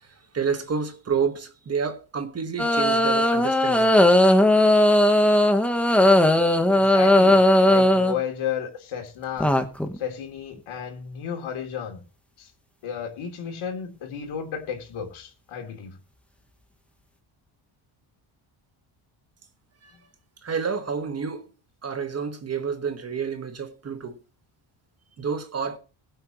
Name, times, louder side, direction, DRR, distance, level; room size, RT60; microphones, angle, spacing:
voice 1, 0.3-3.9 19.8-19.9 20.4-21.5 21.8-24.2 25.2-25.8, right 6 dB, 30° right, 1.4 m, -29 dB
sound 1, 2.6-8.2 9.4-10.0, left 1 dB, 5° left, 1.0 m, -18 dB
voice 2, 6.7-7.4 7.7-9.5 9.9-12.0 12.4-12.5 12.8-16.0, left 8 dB, 75° left, 3.3 m, -33 dB
21.0 x 7.9 x 3.1 m
cardioid pair, 170°, 49 cm